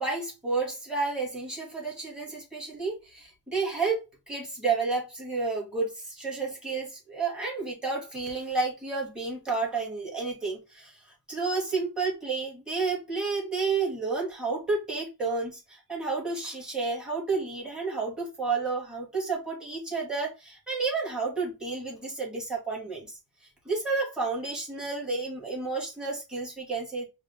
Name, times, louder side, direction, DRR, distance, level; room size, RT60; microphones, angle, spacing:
voice 1, 0.0-11.0 11.3-23.2 23.6-27.1, right 4 dB, ahead, 2.7 m, -31 dB
4.9 x 2.5 x 3.8 m
cardioid pair, 95°, 47 cm